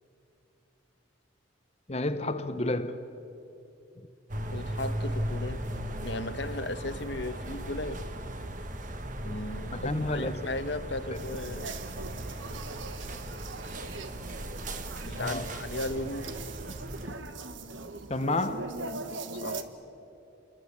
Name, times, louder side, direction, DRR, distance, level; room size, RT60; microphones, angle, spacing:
voice 1, 1.9-3.0 9.7-10.5 15.2-15.5 18.1-18.7, left 2 dB, 35° left, 0.9 m, -30 dB
sound 1, 4.3-17.1, right 1 dB, 40° right, 1.6 m, -37 dB
voice 2, 4.4-5.7 6.0-8.1 9.2-11.7 15.1-16.4 19.4-19.6, left 2 dB, 65° left, 1.3 m, -36 dB
sound 2, 11.1-19.6, right 3 dB, 80° right, 1.5 m, -40 dB
28.5 x 21.5 x 8.5 m
head